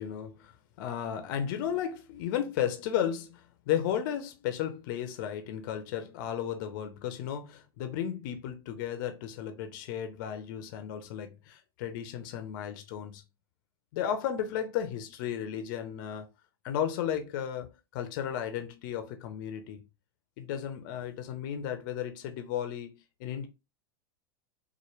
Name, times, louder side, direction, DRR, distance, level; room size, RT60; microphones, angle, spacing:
voice 1, 0.0-13.2 13.9-16.3 16.6-17.7 17.9-19.8 20.4-23.5, left 9 dB, 55° left, 0.6 m, -34 dB
4.4 x 2.1 x 3.1 m
hypercardioid pair, 100°, 13 cm